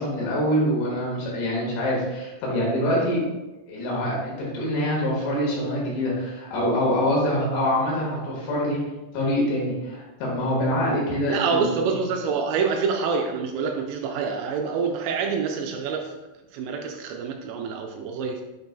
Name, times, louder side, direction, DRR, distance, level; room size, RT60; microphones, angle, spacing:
voice 1, 0.0-3.2 3.7-8.8 9.1-12.0, equal, 85° left, -4 dB, 4.1 m, -25 dB
voice 2, 11.3-16.1 16.5-18.4, right 5 dB, 85° right, 2 dB, 2.5 m, -26 dB
7.9 x 5.3 x 2.2 m, 1.1 s
omnidirectional pair, 5.3 m